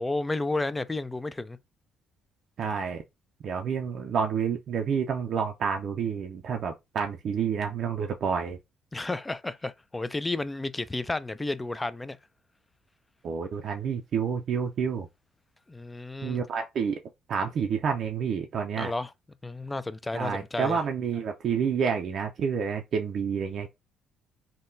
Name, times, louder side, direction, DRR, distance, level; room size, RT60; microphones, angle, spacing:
voice 1, 0.0-1.6 8.9-12.2 15.7-16.4 18.8-19.1 19.4-20.8, left 2 dB, 15° left, 0.3 m, -32 dB
voice 2, 2.6-3.0 3.4-8.6 13.2-15.1 16.2-17.0 17.3-18.9 20.1-23.7, right 6 dB, 60° right, 0.4 m, -29 dB
3.7 x 2.1 x 2.6 m
supercardioid pair, 70°, 0 cm